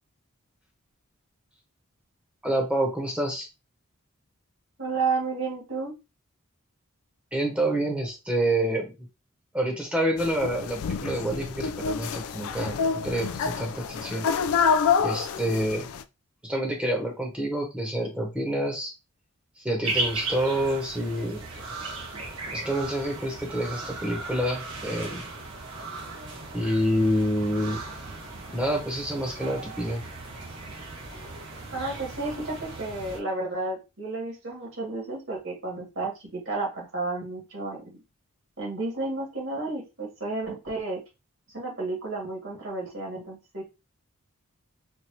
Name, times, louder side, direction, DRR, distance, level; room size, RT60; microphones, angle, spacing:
voice 1, 2.4-3.5 7.3-8.9 9.5-12.8 13.0-14.3 15.0-15.8 16.5-18.9 19.6-21.4 22.5-25.2 26.5-27.8 28.5-30.0, right 1 dB, 5° right, 0 dB, 0.9 m, -27 dB
voice 2, 4.8-5.9 31.7-38.0 38.6-41.0 41.5-43.6, right 3 dB, 65° right, -1 dB, 1.8 m, -32 dB
sound 1, 10.2-16.0, left 6 dB, 85° left, 0.3 m, -27 dB
sound 2, 19.8-33.2, right 3 dB, 90° right, 1.3 m, -36 dB
4.6 x 2.6 x 2.8 m, 0.26 s
head